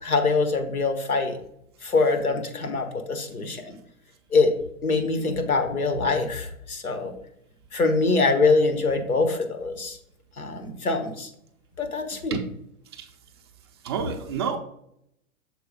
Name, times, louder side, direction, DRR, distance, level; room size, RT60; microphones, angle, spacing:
voice 1, 0.0-1.4 1.8-3.8 4.3-4.5 4.8-7.1 7.7-10.0 10.4-11.3 11.8-12.4, left 3 dB, 80° left, 6 dB, 1.3 m, -24 dB
voice 2, 13.8-14.6, right 7 dB, 20° right, 4 dB, 0.4 m, -28 dB
6.7 x 4.6 x 4.0 m, 0.75 s
figure-of-eight pair, 115°, 43 cm